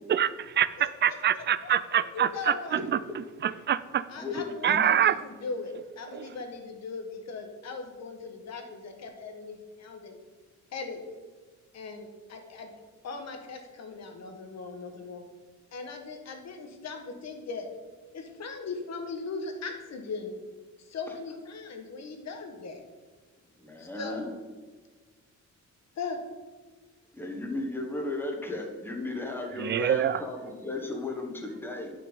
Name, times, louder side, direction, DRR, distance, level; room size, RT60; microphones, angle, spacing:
voice 1, 0.1-2.8 3.4-4.0 4.6-5.2 6.1-6.2 29.6-30.2, right 9 dB, 40° right, 16 dB, 0.4 m, -25 dB
voice 2, 0.8-2.8 4.1-10.2 10.7-11.0 11.7-12.7 13.0-15.3 15.7-17.7 18.1-20.4 20.8-22.8 23.8-24.3 25.9-26.2, left 4 dB, 65° left, 4 dB, 1.5 m, -39 dB
voice 3, 4.2-4.8 23.6-24.3 27.1-31.9, left 2 dB, 5° left, 1 dB, 1.4 m, -35 dB
9.3 x 6.3 x 5.4 m, 1.4 s
wide cardioid pair, 150°, 29 cm